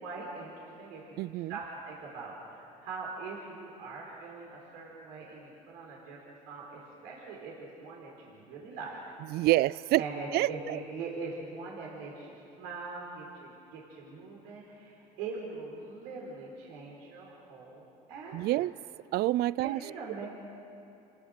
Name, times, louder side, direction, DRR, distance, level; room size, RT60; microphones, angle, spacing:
voice 1, 0.0-9.0 9.9-18.7 19.6-20.3, right 3 dB, 80° right, -3 dB, 4.4 m, -42 dB
voice 2, 1.2-1.6 9.3-10.0 10.3-10.8 18.3-18.7 19.1-19.8, right 17 dB, 60° right, 22 dB, 0.4 m, -27 dB
28.5 x 18.0 x 6.6 m, 2.7 s
supercardioid pair, 75°, 18 cm